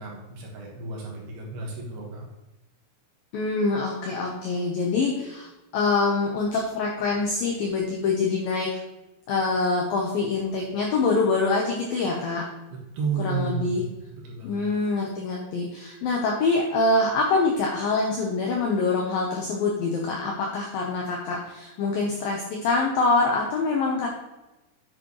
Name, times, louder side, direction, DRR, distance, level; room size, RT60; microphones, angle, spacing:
voice 1, 0.0-2.3 12.9-14.7, right 5 dB, 65° right, -2 dB, 3.1 m, -32 dB
voice 2, 3.3-8.8 9.3-12.5 13.2-13.8 14.4-24.1, left 3 dB, 80° left, -1 dB, 2.1 m, -25 dB
10.0 x 7.9 x 3.2 m, 1.0 s
omnidirectional pair, 5.6 m